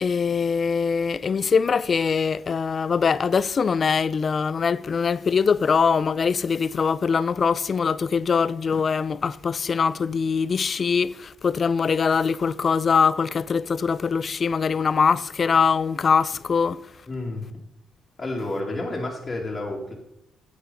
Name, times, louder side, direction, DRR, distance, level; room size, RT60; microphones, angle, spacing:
voice 1, 0.0-16.8, left 5 dB, 45° left, 0.4 m, -22 dB
voice 2, 17.1-17.5 18.2-19.9, left 2 dB, 25° left, 2.6 m, -30 dB
9.7 x 8.7 x 4.0 m
cardioid pair, 90°, 0 cm